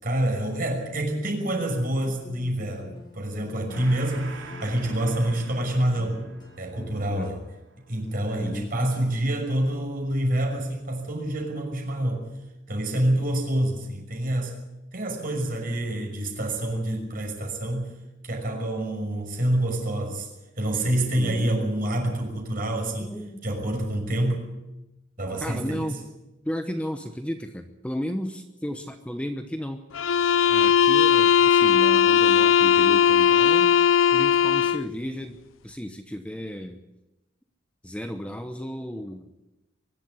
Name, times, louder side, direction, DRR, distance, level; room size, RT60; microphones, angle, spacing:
voice 1, 0.0-6.2 6.6-7.4 7.9-12.3 12.7-14.5 14.9-17.9 18.2-20.3 20.6-23.1 23.4-24.5 25.2-26.0, right 1 dB, 45° right, 1 dB, 6.1 m, -27 dB
voice 2, 2.1-3.9 7.1-7.3 8.4-8.8 21.2-21.5 23.0-23.5 25.3-26.0 26.4-29.8 30.5-33.8 34.1-35.4 35.6-36.8 37.8-39.3, equal, 5° left, 6 dB, 1.0 m, -34 dB
sound 1, 2.4-7.3, equal, 20° left, 3.1 m, -47 dB
Gong, 3.7-10.7, right 4 dB, 70° right, 3.2 m, -47 dB
sound 2, 29.9-34.9, left 8 dB, 90° left, 0.6 m, -18 dB
23.5 x 12.0 x 9.6 m, 0.98 s
head